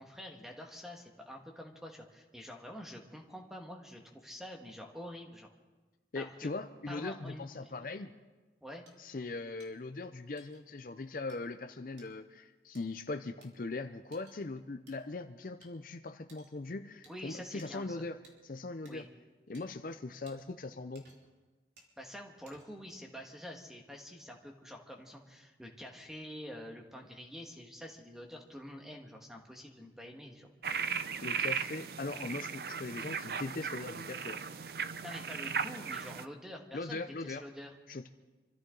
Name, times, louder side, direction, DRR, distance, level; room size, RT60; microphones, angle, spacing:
voice 1, 0.0-5.5 6.1-6.5 6.9-7.7 8.6-8.8 17.1-18.0 18.8-19.1 22.0-30.5 35.0-37.7, equal, 5° right, 1 dB, 1.6 m, -47 dB
voice 2, 6.1-8.1 9.0-18.2 18.4-19.0 19.5-21.1 31.2-34.4 36.7-37.4 37.9-38.1, left 3 dB, 50° left, 8 dB, 0.6 m, -40 dB
sound 1, 8.9-9.0 9.6-9.7 10.4-10.6 11.3-11.4 12.0-12.1 12.7-12.8 13.4-13.5 14.1-14.4 14.9-15.0 15.6-15.7 16.3-16.6 17.0-17.2 17.6-17.7 18.2-18.4 18.9-19.0 19.5-19.6 20.3-20.4 20.9-21.3 21.8-21.9 22.5-22.9, right 2 dB, 90° right, 3.2 m, -60 dB
sound 2, 30.6-36.3, right 6 dB, 60° right, 0.5 m, -37 dB
26.0 x 14.0 x 3.9 m, 1.2 s
head